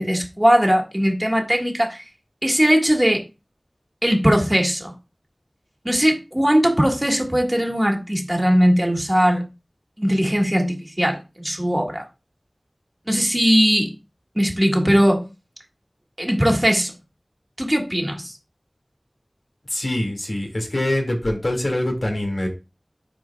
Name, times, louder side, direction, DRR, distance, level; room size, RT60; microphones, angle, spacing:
voice 1, 0.0-2.0 2.4-3.2 4.0-4.9 5.8-9.5 10.0-12.0 13.1-13.9 14.3-15.2 16.2-16.9 17.6-18.3, equal, 20° right, 1.7 m, -19 dB
voice 2, 19.7-22.5, left 1 dB, 75° left, 2.1 m, -24 dB
10.5 x 4.5 x 2.3 m
wide cardioid pair, 40°, 0 cm